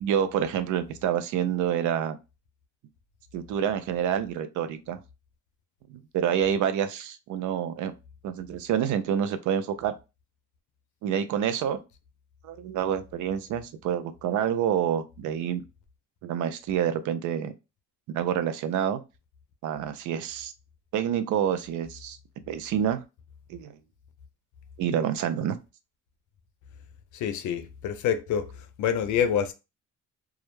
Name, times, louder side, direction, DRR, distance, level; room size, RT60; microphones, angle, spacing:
voice 1, 0.0-2.2 3.3-5.0 5.9-7.9 8.2-9.9 11.0-11.8 12.4-15.6 16.2-17.5 18.1-19.0 19.6-20.5 20.9-22.2 22.5-23.0 23.5-23.8 24.8-25.6, right 9 dB, 75° right, 0.5 m, -27 dB
voice 2, 27.1-28.5 28.8-29.5, left 8 dB, 75° left, 0.5 m, -26 dB
2.3 x 2.0 x 3.0 m
cardioid pair, 90°, 30 cm